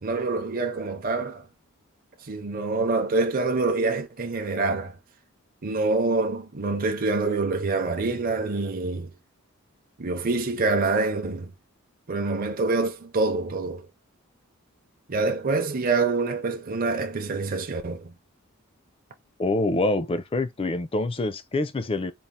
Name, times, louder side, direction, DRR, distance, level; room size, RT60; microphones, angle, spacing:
voice 1, 0.0-1.4 2.2-5.0 5.6-9.1 10.0-11.5 12.1-13.9 15.1-18.1, right 3 dB, 40° right, 0.6 m, -26 dB
voice 2, 19.4-22.1, left 2 dB, 25° left, 0.4 m, -26 dB
4.2 x 2.4 x 3.6 m
head